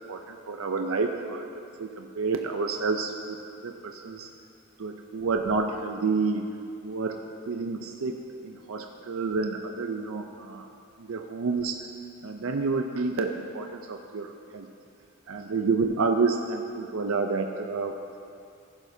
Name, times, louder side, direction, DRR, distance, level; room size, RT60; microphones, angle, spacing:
voice 1, 0.1-1.5 1.8-4.3 4.8-6.5 6.8-10.7 11.0-11.8 12.2-14.7 15.3-18.2, right 4 dB, 75° right, 4 dB, 0.5 m, -29 dB
15.0 x 10.5 x 2.7 m, 2.5 s
head